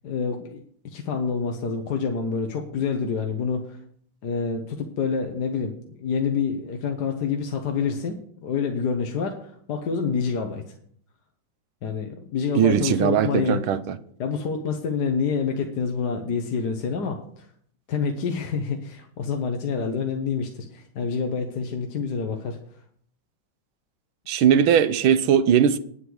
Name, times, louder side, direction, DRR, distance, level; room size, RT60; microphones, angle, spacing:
voice 1, 0.0-3.8 4.2-10.6 11.8-13.6 14.2-17.5 17.9-22.8, left 5 dB, 60° left, 1.5 m, -27 dB
voice 2, 12.5-14.0 24.3-25.8, right 9 dB, 80° right, 1.6 m, -19 dB
9.8 x 8.3 x 6.2 m
omnidirectional pair, 2.2 m